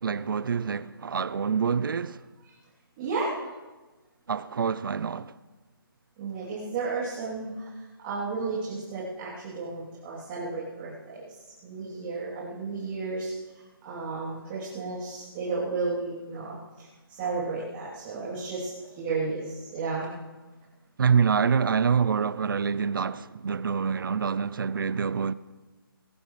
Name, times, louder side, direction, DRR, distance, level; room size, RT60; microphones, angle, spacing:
voice 1, 0.0-2.2 4.3-5.3 21.0-25.3, right 6 dB, 60° right, 0.6 m, -26 dB
voice 2, 3.0-3.4 6.2-7.7 8.0-11.2 11.6-13.3 13.8-20.1, right 4 dB, 25° right, 3.4 m, -33 dB
21.0 x 17.5 x 3.3 m
hypercardioid pair, 160°, 12 cm